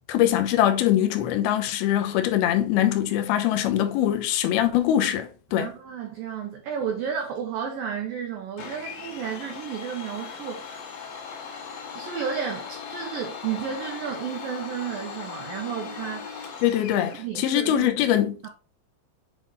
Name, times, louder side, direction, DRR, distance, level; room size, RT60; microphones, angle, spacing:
voice 1, 0.1-5.7 16.6-18.4, left 11 dB, 75° left, 2.4 m, -23 dB
voice 2, 5.5-10.8 11.9-16.3 17.2-17.9 18.4-18.5, right 7 dB, 85° right, 2.0 m, -32 dB
Domestic sounds home sounds, 8.6-17.2, left 6 dB, 60° left, 3.0 m, -38 dB
8.2 x 3.9 x 3.9 m
omnidirectional pair, 5.4 m